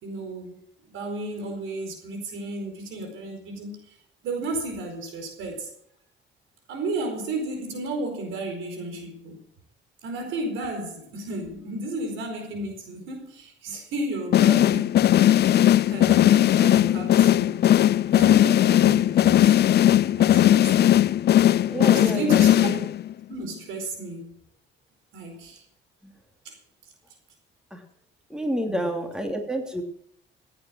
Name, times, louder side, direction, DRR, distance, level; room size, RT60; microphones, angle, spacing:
voice 1, 0.0-4.0 4.2-5.7 6.7-9.4 10.0-17.6 18.1-19.5 20.1-21.0 21.9-22.8 23.3-24.3 25.1-25.6 26.4-26.5 28.7-29.0, right 2 dB, 90° right, 4.5 m, -33 dB
sound 1, 14.3-23.1, left 12 dB, 55° left, 0.5 m, -18 dB
voice 2, 21.7-22.5 26.0-26.1 27.7-27.8 28.3-29.8, equal, 5° right, 2.9 m, -28 dB
16.0 x 8.9 x 6.3 m
cardioid pair, 90°, 20 cm